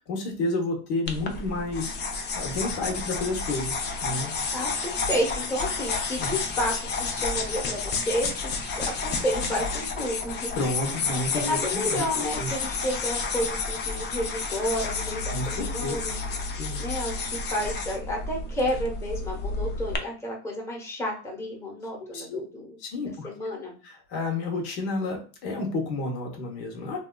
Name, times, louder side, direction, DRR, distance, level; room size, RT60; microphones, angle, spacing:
voice 1, 0.1-1.9 2.3-4.3 6.2-6.3 10.5-11.6 11.9-12.1 12.4-12.5 15.3-15.9 16.6-16.8 22.1-22.4 22.8-23.3 23.8-27.0, left 2 dB, 70° left, 2 dB, 1.0 m, -30 dB
sound 1, 1.1-20.0, left 4 dB, 30° left, 0.5 m, -31 dB
voice 2, 4.5-10.5 11.1-16.2 16.8-23.7, equal, 10° left, -2 dB, 1.0 m, -31 dB
2.8 x 2.4 x 2.2 m, 0.37 s
supercardioid pair, 110°, 34 cm